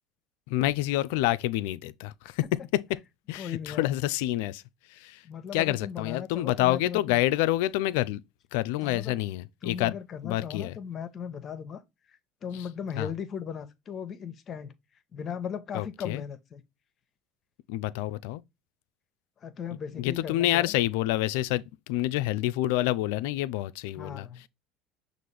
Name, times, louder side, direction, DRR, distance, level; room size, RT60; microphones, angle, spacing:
voice 1, 0.5-2.4 2.7-2.8 3.3-4.6 4.9-5.2 5.5-8.2 8.5-10.0 10.2-10.8 13.0-13.1 15.7-16.2 17.7-18.4 20.0-24.3, left 15 dB, 75° left, 0.3 m, -28 dB
voice 2, 3.3-3.9 5.2-7.2 8.8-9.1 9.6-11.8 12.1-14.7 15.1-16.6 19.4-20.7 23.9-24.4, left 7 dB, 40° left, 0.8 m, -37 dB
6.0 x 2.5 x 3.3 m
hypercardioid pair, 85°, 0 cm